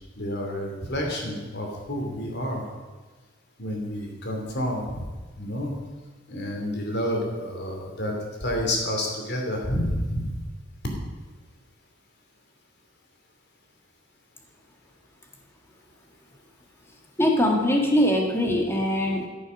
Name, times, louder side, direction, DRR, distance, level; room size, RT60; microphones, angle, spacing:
voice 1, 0.2-2.6 3.6-5.0 5.4-5.7 6.3-8.1 8.4-10.3, left 1 dB, 55° left, 1 dB, 2.8 m, -29 dB
voice 2, 17.2-19.3, equal, 15° left, 0 dB, 1.9 m, -22 dB
13.5 x 7.0 x 6.3 m, 1.3 s
head